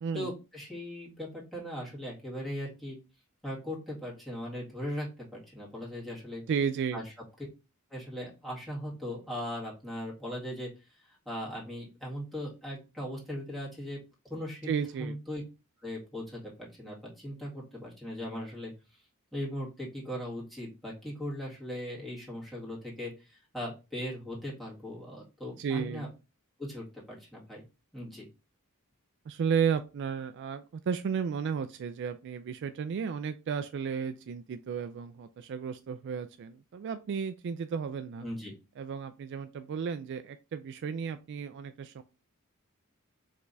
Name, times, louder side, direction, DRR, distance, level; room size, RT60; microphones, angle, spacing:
voice 1, 0.1-3.0 3.4-6.4 6.9-7.0 7.9-14.0 14.2-14.7 15.0-15.4 15.8-18.7 19.3-26.1 26.6-27.6 27.9-28.3 38.2-38.5, equal, ahead, -6 dB, 1.9 m, -39 dB
voice 2, 6.5-7.0 14.7-15.2 25.6-26.1 29.3-38.3 38.8-42.0, right 6 dB, 55° right, 10 dB, 0.3 m, -33 dB
4.9 x 3.3 x 2.6 m, 0.29 s
head